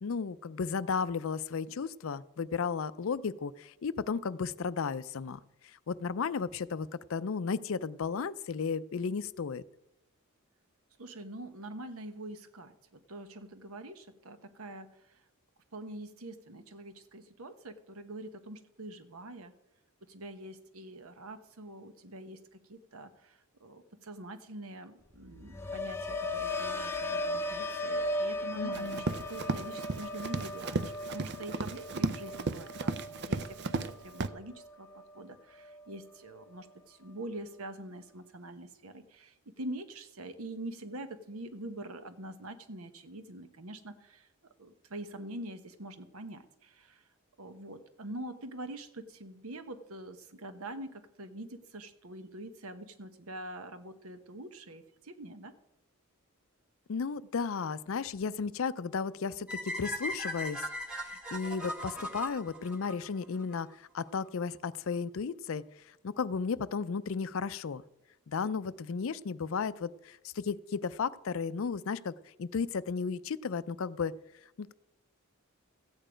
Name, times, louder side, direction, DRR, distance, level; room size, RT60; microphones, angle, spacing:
voice 1, 0.0-5.4 5.9-9.6 28.6-29.1 56.9-60.6 60.9-65.6 66.0-67.8 68.3-74.1 74.6-74.7, left 5 dB, 60° left, 17 dB, 0.4 m, -34 dB
voice 2, 11.0-14.9 15.7-19.5 20.1-34.9 35.1-44.3 44.6-47.0 47.4-55.5, right 1 dB, 75° right, 10 dB, 1.1 m, -45 dB
sound 1, 25.1-35.2 35.6-36.0, left 1 dB, 10° left, 0.7 m, -37 dB
Run, 28.7-33.9 34.2-34.3, right 3 dB, 50° right, 0.5 m, -34 dB
sound 2, 59.5-63.6, equal, 5° right, 1.4 m, -38 dB
14.5 x 8.9 x 5.0 m, 0.87 s
head